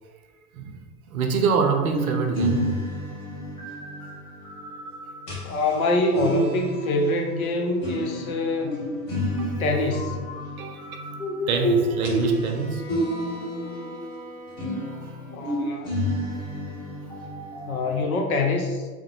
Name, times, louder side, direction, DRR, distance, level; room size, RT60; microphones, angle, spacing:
voice 1, 0.5-0.9 1.1-2.7 9.1-9.6 10.6-11.0 11.5-12.8 13.4-13.5 13.7-13.8 14.7-15.2, right 5 dB, 65° right, 3 dB, 0.6 m, -26 dB
sound 1, 1.7-14.2 14.5-18.1, equal, 45° left, 1.4 m, -30 dB
voice 2, 5.4-8.8 9.6-10.2 15.3-15.9 17.7-18.9, left 2 dB, 65° left, 3 dB, 0.6 m, -25 dB
Bowed string instrument, 11.4-15.1, left 1 dB, 10° left, 0.4 m, -44 dB
3.6 x 2.0 x 2.9 m, 1.5 s
figure-of-eight pair, 90°, 46 cm